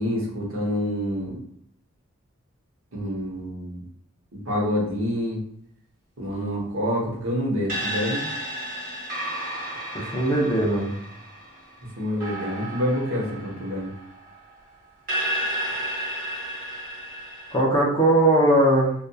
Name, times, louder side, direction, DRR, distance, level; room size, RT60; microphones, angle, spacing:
voice 1, 0.0-1.4 2.9-3.8 4.4-5.4 6.2-8.2 12.0-13.9, equal, 70° right, -3 dB, 0.9 m, -27 dB
sound 1, 7.7-14.5 15.1-17.6, equal, 40° right, 1.0 m, -32 dB
voice 2, 9.9-10.9 17.5-18.9, right 1 dB, 20° left, -4 dB, 0.6 m, -19 dB
2.7 x 2.4 x 2.2 m, 0.63 s
head